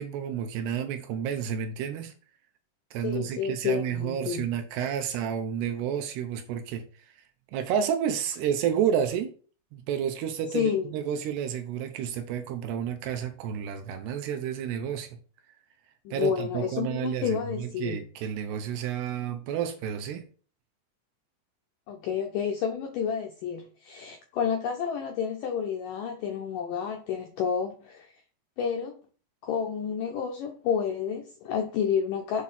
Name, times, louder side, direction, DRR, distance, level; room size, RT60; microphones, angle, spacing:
voice 1, 0.0-2.1 2.9-6.9 7.5-9.3 9.7-15.2 16.1-20.3, right 8 dB, 80° right, 7 dB, 2.7 m, -30 dB
voice 2, 3.0-4.5 10.5-10.9 16.0-18.0 21.9-28.1 28.6-28.9 29.4-32.4, left 7 dB, 85° left, 3 dB, 1.9 m, -30 dB
7.4 x 3.7 x 5.8 m, 0.41 s
omnidirectional pair, 5.0 m